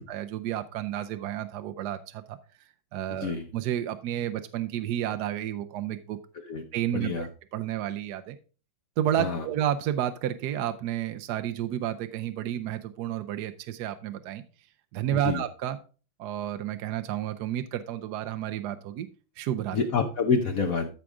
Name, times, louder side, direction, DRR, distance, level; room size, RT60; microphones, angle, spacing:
voice 1, 0.0-2.4 2.9-6.2 6.7-8.4 9.0-14.4 14.9-15.8 16.2-19.1 19.4-19.8, right 11 dB, 70° right, 8 dB, 1.1 m, -31 dB
voice 2, 6.9-7.3 9.2-9.4 15.2-15.4 19.7-20.9, left 5 dB, 60° left, 5 dB, 1.0 m, -27 dB
13.5 x 4.9 x 3.6 m, 0.36 s
omnidirectional pair, 2.1 m